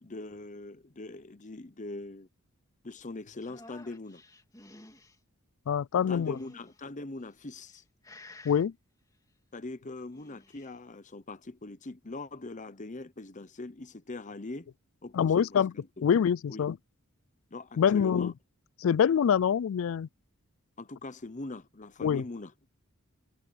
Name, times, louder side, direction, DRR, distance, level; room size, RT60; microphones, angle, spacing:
voice 1, 0.0-2.3 2.8-4.2 6.1-7.8 9.5-14.7 15.0-15.9 16.5-16.6 17.5-18.3 20.8-22.5, left 2 dB, 35° left, 0.9 m, -42 dB
sound 1, 3.4-5.2 6.0-6.8 7.5-7.8 8.0-8.7 10.0-10.7, left 2 dB, 15° left, 3.4 m, -52 dB
voice 2, 5.7-6.4 8.4-8.7 15.1-15.7 16.0-16.8 17.8-18.3 18.8-20.1 22.0-22.2, left 7 dB, 65° left, 0.3 m, -25 dB
head